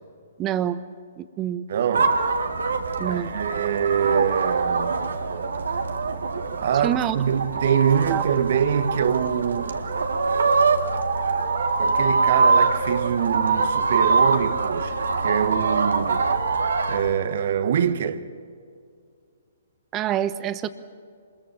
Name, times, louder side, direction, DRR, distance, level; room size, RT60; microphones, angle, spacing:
voice 1, 0.4-0.8 1.2-1.7 3.0-3.3 6.8-7.2 8.1-8.3 19.9-20.7, right 11 dB, 25° right, 1.1 m, -26 dB
voice 2, 1.7-2.2 3.0-5.0 6.6-9.7 11.8-16.3 16.9-18.3, right 8 dB, 55° right, 1.3 m, -24 dB
sound 1, 1.9-17.1, right 4 dB, 75° right, 1.8 m, -24 dB
27.0 x 21.5 x 7.3 m
figure-of-eight pair, 130°, 0 cm